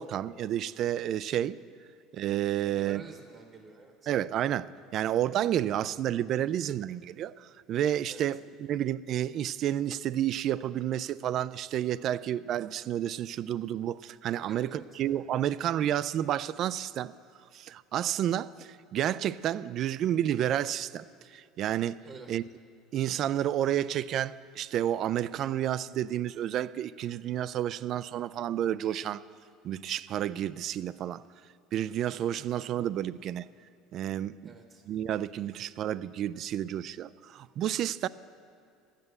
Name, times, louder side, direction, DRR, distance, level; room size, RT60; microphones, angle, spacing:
voice 1, 0.0-1.6 2.1-3.0 4.1-17.1 17.5-22.0 22.3-22.4 22.9-29.2 29.6-31.2 31.7-33.5 33.9-34.5 34.9-38.1, right 11 dB, 45° right, 0.3 m, -30 dB
voice 2, 2.6-4.1 8.1-8.2 14.4-15.0 22.0-22.3 34.4-34.8, right 4 dB, 30° right, 0.9 m, -48 dB
12.0 x 9.0 x 8.0 m
cardioid pair, 140°, 0 cm